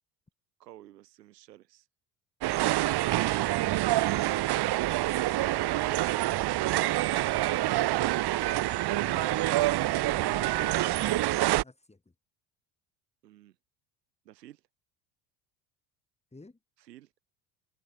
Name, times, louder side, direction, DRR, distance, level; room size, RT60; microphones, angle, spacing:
voice 1, 0.6-1.9 4.6-4.9 13.2-13.6 14.2-14.6 16.8-17.1, right 14 dB, 90° right, 4.9 m, -52 dB
sound 1, 2.4-11.6, right 16 dB, 55° right, 1.7 m, -27 dB
voice 2, 9.0-12.1 16.3-16.6, left 2 dB, 15° left, 6.2 m, -50 dB
hypercardioid pair, 75°, 47 cm